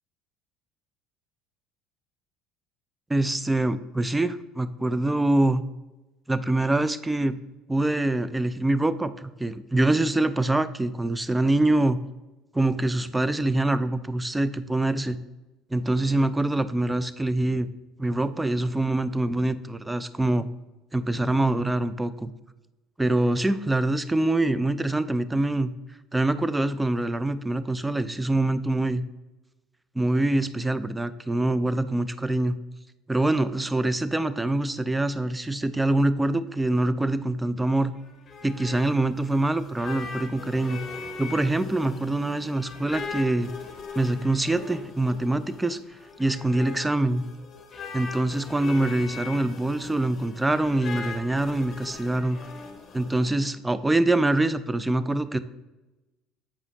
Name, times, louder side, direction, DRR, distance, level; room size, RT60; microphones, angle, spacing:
voice 1, 3.1-5.6 6.3-7.4 7.7-12.0 12.5-15.2 15.7-17.7 18.0-20.5 20.9-22.3 23.0-25.7 26.1-29.0 30.0-32.6 33.1-37.9 38.4-40.8 41.2-43.5 43.9-45.8 46.2-47.2 47.9-52.4 52.9-55.4, right 2 dB, 10° right, 14 dB, 0.4 m, -24 dB
sound 1, 38.0-53.3, left 4 dB, 40° left, 0.9 m, -40 dB
7.2 x 4.9 x 2.8 m, 1.1 s
hypercardioid pair, 70°, 0 cm